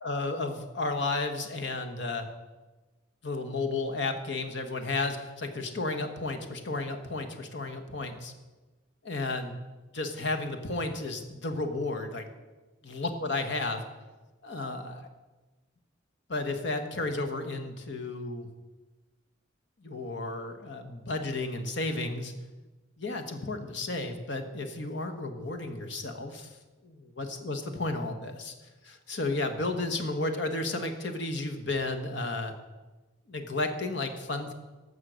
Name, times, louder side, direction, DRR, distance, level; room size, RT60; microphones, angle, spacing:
voice 1, 0.0-2.2 3.2-8.3 9.0-9.5 9.9-12.2 12.9-13.8 14.4-15.1 16.3-18.5 19.8-22.3 23.0-26.5 26.8-28.5 28.8-32.5 33.3-34.5, left 2 dB, 65° left, 5 dB, 1.2 m, -33 dB
14.5 x 5.7 x 6.3 m, 1.2 s
head